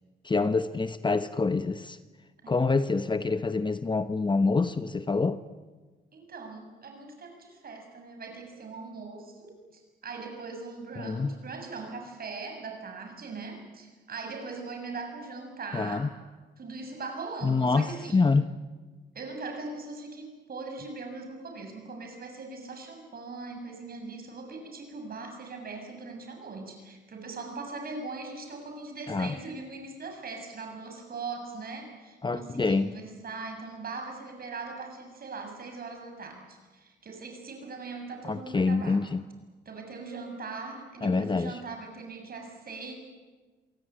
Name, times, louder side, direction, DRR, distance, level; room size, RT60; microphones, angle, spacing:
voice 1, 0.2-2.0 2.5-5.4 11.0-11.3 15.7-16.1 17.4-18.5 29.1-29.4 32.2-32.9 38.2-39.2 41.0-41.6, left 4 dB, 25° left, 11 dB, 1.0 m, -26 dB
voice 2, 6.1-16.2 16.6-18.2 19.1-39.1 39.7-42.9, right 4 dB, 50° right, 4 dB, 7.1 m, -40 dB
26.5 x 18.5 x 8.9 m, 1.3 s
cardioid pair, 90°, 20 cm